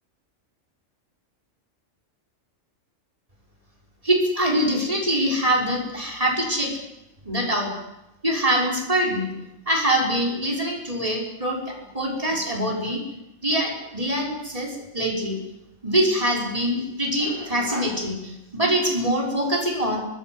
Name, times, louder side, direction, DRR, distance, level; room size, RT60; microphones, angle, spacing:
voice 1, 4.0-6.7 7.2-7.7 8.2-9.4 9.7-13.0 13.4-15.4 15.8-20.0, right 1 dB, 25° right, -1 dB, 6.0 m, -24 dB
25.5 x 20.0 x 8.2 m, 0.92 s
omnidirectional pair, 1.3 m